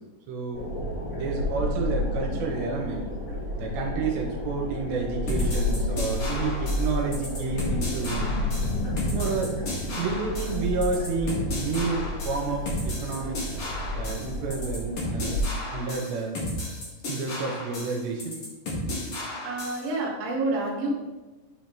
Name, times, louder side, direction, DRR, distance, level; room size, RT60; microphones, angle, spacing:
voice 1, 0.3-0.6 1.1-3.0 3.6-8.3 9.1-9.6 9.9-13.5 13.9-16.4 17.1-18.4, right 4 dB, 80° right, 0 dB, 3.0 m, -30 dB
sound 1, 0.5-15.4, left 1 dB, 80° left, 4.3 m, -31 dB
sound 2, 5.3-19.9, left 1 dB, 60° left, 1.4 m, -34 dB
voice 2, 19.4-20.9, right 2 dB, 55° right, -4 dB, 1.7 m, -28 dB
9.1 x 5.1 x 3.0 m, 1.2 s
omnidirectional pair, 5.1 m